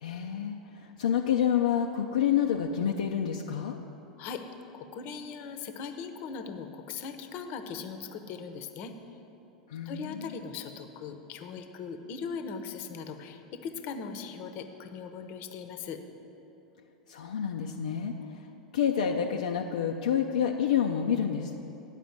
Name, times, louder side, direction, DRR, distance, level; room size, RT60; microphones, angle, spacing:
voice 1, 0.0-3.8 9.7-10.3 17.1-18.4 18.7-21.6, left 8 dB, 75° left, 2 dB, 0.4 m, -28 dB
voice 2, 4.7-8.9 9.9-16.0, left 5 dB, 50° left, 7 dB, 0.8 m, -39 dB
9.0 x 5.0 x 7.7 m, 3.0 s
hypercardioid pair, 90°, 4 cm